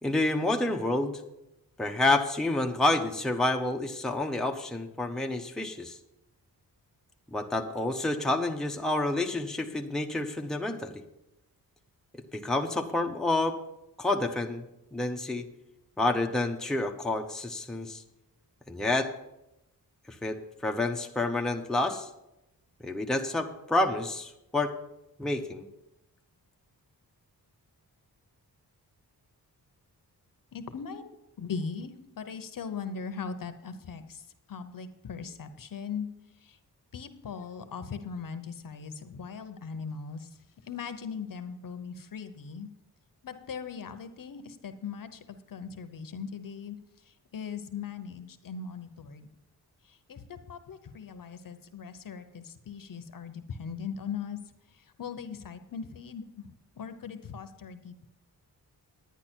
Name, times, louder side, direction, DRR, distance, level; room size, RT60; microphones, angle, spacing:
voice 1, 0.0-1.2 1.8-6.0 7.3-11.0 12.3-13.6 14.0-14.6 14.9-15.5 16.0-18.0 18.7-19.1 20.2-22.1 22.8-24.7 25.2-25.7, left 2 dB, ahead, 3 dB, 0.7 m, -29 dB
voice 2, 30.5-31.1 31.4-36.1 36.4-36.6 36.9-40.3 40.6-42.7 43.2-46.8 47.0-49.3 49.8-54.4 54.7-58.1, left 6 dB, 60° left, 9 dB, 0.9 m, -39 dB
10.5 x 9.6 x 4.4 m, 0.90 s
wide cardioid pair, 105°, 38 cm